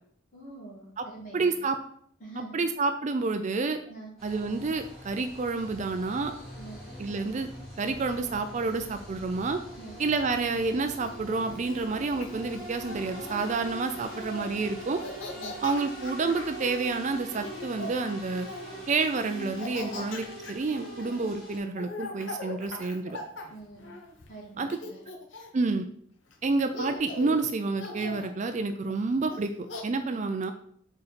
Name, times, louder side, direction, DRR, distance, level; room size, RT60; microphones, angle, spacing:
voice 1, 0.3-1.6 2.2-2.6 3.9-4.1 6.6-6.8 9.7-10.0 15.3-15.6 19.9-20.1 23.5-23.9 24.3-25.0 28.8-28.9 30.1-30.2, right 2 dB, 40° left, -4 dB, 2.1 m, -45 dB
voice 2, 1.3-1.8 2.5-3.8 4.2-6.3 7.0-7.5 7.8-9.6 10.0-15.0 15.6-18.5 18.9-23.2 24.6-24.7 25.5-25.9 26.4-29.5 29.8-30.5, right 3 dB, 35° right, 7 dB, 0.4 m, -29 dB
sound 1, 4.2-21.6, right 1 dB, 5° left, 2.1 m, -43 dB
Laughter, 11.1-13.5 14.0-14.5 14.8-16.6 17.3-18.8 19.4-24.3 24.7-25.7 26.3-26.4 26.7-27.4 27.8-28.3 29.3-29.8, left 2 dB, 60° left, 0.9 m, -41 dB
4.6 x 4.1 x 5.1 m, 0.64 s
head